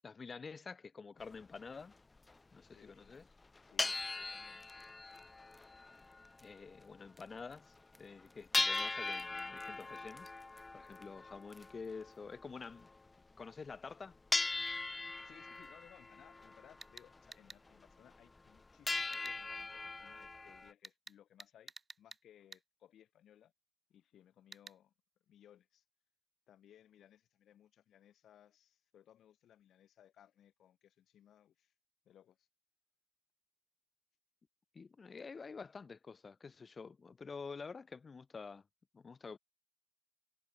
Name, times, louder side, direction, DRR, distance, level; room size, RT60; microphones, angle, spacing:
voice 1, 0.0-1.9 2.5-3.3 6.4-10.3 10.7-12.9 13.4-14.2 34.7-38.6 38.9-39.4, left 5 dB, 45° left, 1.5 m, -48 dB
sound 1, 1.2-1.3 1.9-2.0 2.2-2.3 3.1-3.2 3.4-6.5 6.8-6.9 7.3-7.4 7.8-7.9 8.5-13.1 13.7-13.9 14.3-17.3 17.7-17.8 18.1-18.6 18.9-20.7, left 3 dB, 30° left, 0.5 m, -40 dB
voice 2, 2.7-3.2 3.5-5.4 15.2-23.5 23.9-24.9 25.3-25.8 26.5-31.7 32.1-32.5, left 10 dB, 90° left, 3.4 m, -64 dB
sound 2, 4.6-12.3 12.6-12.9 13.2-13.3, equal, ahead, 6.0 m, -69 dB
sound 3, 16.4-16.5 16.8-17.6 18.9-19.4 20.8-22.2 22.5-22.6 24.5-24.8, right 4 dB, 35° right, 0.9 m, -52 dB
cardioid pair, 80°, 0 cm